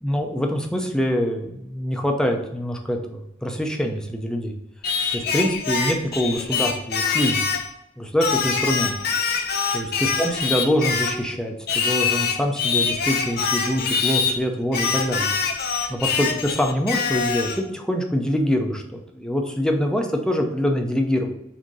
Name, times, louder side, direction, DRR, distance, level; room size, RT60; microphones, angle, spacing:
voice 1, 0.0-4.5 5.1-7.4 8.0-8.9 9.7-15.3 16.0-21.3, equal, 5° left, 2 dB, 0.7 m, -24 dB
Singing, 4.8-7.7 8.2-11.2 11.7-14.4 14.7-17.6, left 5 dB, 55° left, 0.8 m, -24 dB
6.3 x 2.9 x 5.4 m, 0.81 s
head